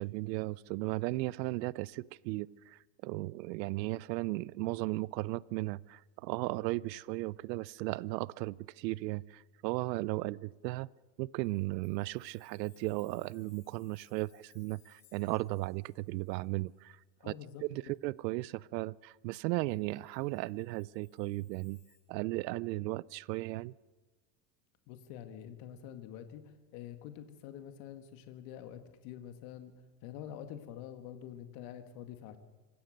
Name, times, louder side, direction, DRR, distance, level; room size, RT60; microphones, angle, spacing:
voice 1, 0.0-10.9 11.2-17.0 17.3-17.4 17.6-21.8 22.1-23.7, right 20 dB, 90° right, 23 dB, 0.7 m, -36 dB
Chime, 11.4-17.5 17.9-18.0 19.7-22.0, left 9 dB, 40° left, 6.5 m, -68 dB
voice 2, 17.2-17.6 24.9-29.7 30.0-32.4, left 10 dB, 65° left, 8 dB, 2.2 m, -47 dB
26.0 x 15.5 x 6.6 m, 1.3 s
supercardioid pair, 135°, 49 cm